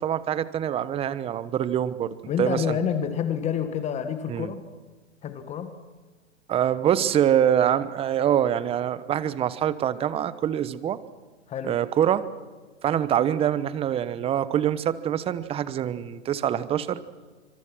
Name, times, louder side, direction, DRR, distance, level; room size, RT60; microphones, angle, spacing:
voice 1, 0.0-2.8 4.3-4.5 6.5-11.0 11.6-12.3 12.8-17.0, right 10 dB, 15° right, 16 dB, 1.0 m, -25 dB
voice 2, 2.3-4.6 5.2-5.8 11.5-11.8, left 8 dB, 20° left, 9 dB, 1.6 m, -28 dB
26.0 x 25.5 x 6.2 m, 1.4 s
hypercardioid pair, 130°, 36 cm